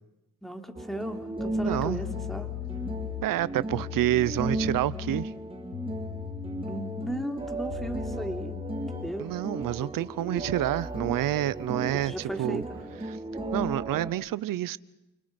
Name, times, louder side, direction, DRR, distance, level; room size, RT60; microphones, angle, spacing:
voice 1, 0.4-2.5 6.6-8.6 9.0-9.3 12.0-12.9, equal, ahead, 3.6 m, -36 dB
sound 1, 0.7-14.1, right 2 dB, 15° right, 3.0 m, -35 dB
sound 2, 1.2-1.3 1.7-9.2, left 17 dB, 85° left, 0.9 m, -39 dB
voice 2, 1.6-2.0 3.2-5.3 9.2-12.6 13.5-14.8, right 14 dB, 75° right, 0.8 m, -28 dB
sound 3, 8.7-14.0, left 3 dB, 30° left, 4.7 m, -55 dB
29.0 x 26.0 x 5.3 m
cardioid pair, 80°, 33 cm